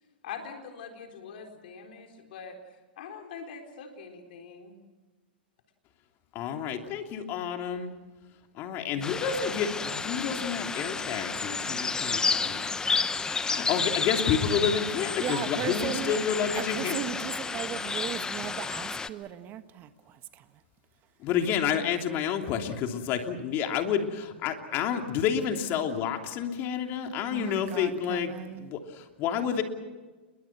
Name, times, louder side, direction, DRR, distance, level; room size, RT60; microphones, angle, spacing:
voice 1, 0.2-2.6 3.0-4.7, left 6 dB, 65° left, 4 dB, 4.1 m, -43 dB
voice 2, 6.3-7.9 8.6-12.7 13.4-17.0 21.2-29.6, left 8 dB, 40° left, 4 dB, 3.1 m, -29 dB
sound 1, 9.0-19.1, left 4 dB, 10° left, 1.0 m, -31 dB
voice 3, 15.2-16.2 16.5-19.9 27.3-28.7, right 10 dB, 35° right, 10 dB, 1.6 m, -36 dB
29.5 x 22.5 x 6.1 m, 1.3 s
hypercardioid pair, 120°, 6 cm